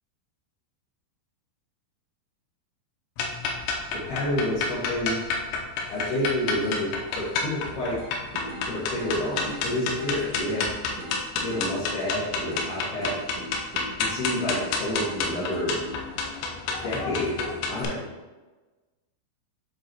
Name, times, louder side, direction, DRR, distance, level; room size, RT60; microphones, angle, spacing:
sound 1, 3.2-17.9, left 4 dB, 85° left, 3.0 m, -30 dB
voice 1, 3.9-5.2 5.9-8.0 8.7-10.7 11.4-13.1 14.0-15.8 16.8-18.1, left 1 dB, 55° left, -11 dB, 2.6 m, -29 dB
sound 2, 8.0-8.7 9.0-10.7 11.0-12.7 13.0-14.7 15.0-15.9, right 1 dB, 70° right, 3.3 m, -40 dB
9.2 x 3.9 x 3.0 m, 1.2 s
omnidirectional pair, 5.1 m